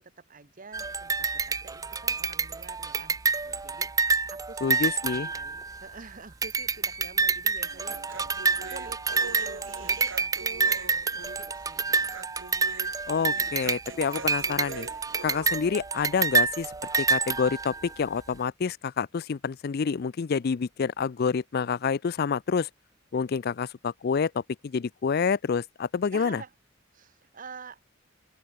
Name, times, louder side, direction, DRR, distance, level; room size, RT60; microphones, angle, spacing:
voice 1, 0.0-4.6 5.1-8.0 8.7-9.0 9.2-12.1 15.7-15.9 26.1-26.5 26.9-27.8, right 4 dB, 45° right, 1.2 m, -47 dB
sound 1, 0.7-6.0 6.4-18.0, right 4 dB, 20° right, 0.5 m, -28 dB
voice 2, 4.6-5.3 13.1-14.9 15.2-22.7 23.1-26.4, left 6 dB, 50° left, 0.4 m, -28 dB
Human voice, 7.6-15.6, right 4 dB, 80° right, 1.6 m, -43 dB
open air
head